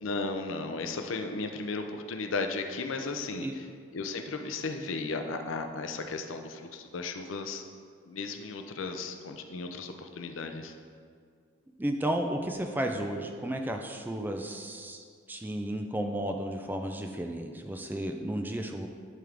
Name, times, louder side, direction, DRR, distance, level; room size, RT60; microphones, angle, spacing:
voice 1, 0.0-3.7 3.9-7.6 8.1-10.7, left 3 dB, 80° left, 5 dB, 0.5 m, -35 dB
voice 2, 11.8-18.9, right 1 dB, 10° right, 4 dB, 0.3 m, -33 dB
11.0 x 3.7 x 3.4 m, 2.1 s
head